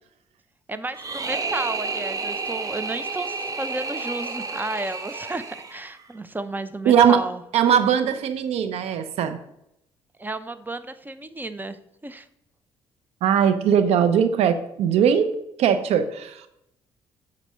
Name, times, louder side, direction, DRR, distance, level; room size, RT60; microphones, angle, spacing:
voice 1, 0.7-7.4 10.2-11.8 12.0-12.3, right 2 dB, 15° right, 13 dB, 0.7 m, -32 dB
sound 1, 0.9-6.1, right 4 dB, 35° right, 1.0 m, -31 dB
voice 2, 6.8-7.2 7.5-9.4 13.2-15.3 15.6-16.4, right 8 dB, 75° right, 10 dB, 0.8 m, -20 dB
6.7 x 4.2 x 6.2 m, 0.80 s
supercardioid pair, 65°, 11 cm